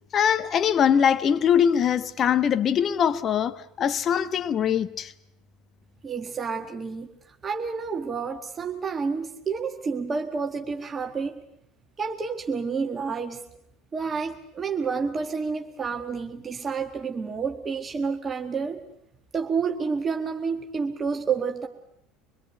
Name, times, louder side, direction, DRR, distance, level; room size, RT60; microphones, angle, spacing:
voice 1, 0.1-5.1, left 8 dB, 40° left, 1.2 m, -22 dB
voice 2, 6.0-11.4 12.0-13.4 13.9-18.8 19.3-21.7, right 5 dB, 30° right, 1.7 m, -29 dB
24.5 x 22.5 x 8.2 m
figure-of-eight pair, 65°, 0 cm